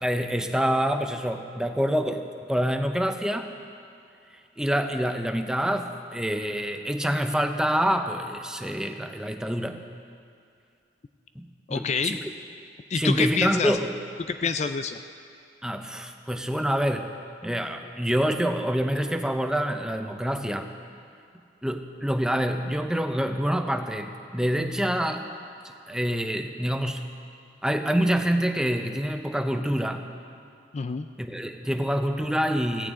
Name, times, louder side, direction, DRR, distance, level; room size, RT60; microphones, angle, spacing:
voice 1, 0.0-3.5 4.6-9.8 11.4-12.3 12.9-13.9 15.6-17.2 17.4-20.7 21.6-25.2 25.9-27.1 27.6-30.1 31.2-32.9, equal, 5° right, 6 dB, 0.6 m, -26 dB
voice 2, 11.7-12.2 12.9-13.8 14.3-15.0 30.7-31.1, left 5 dB, 40° left, 9 dB, 0.4 m, -27 dB
17.5 x 15.5 x 3.7 m, 2.3 s
head